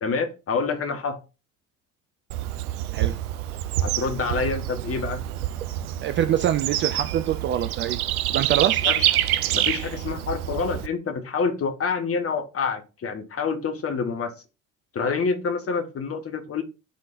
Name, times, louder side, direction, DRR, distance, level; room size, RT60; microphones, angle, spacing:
voice 1, 0.0-1.2 3.8-5.2 8.8-9.2 9.5-14.3 14.9-16.6, left 5 dB, 30° left, 1.3 m, -27 dB
Bird / Insect, 2.3-10.9, right 12 dB, 75° right, 0.6 m, -27 dB
voice 2, 6.0-8.0 8.3-8.8, right 11 dB, 30° right, 0.4 m, -24 dB
10.5 x 3.8 x 2.6 m
figure-of-eight pair, 60°, 45 cm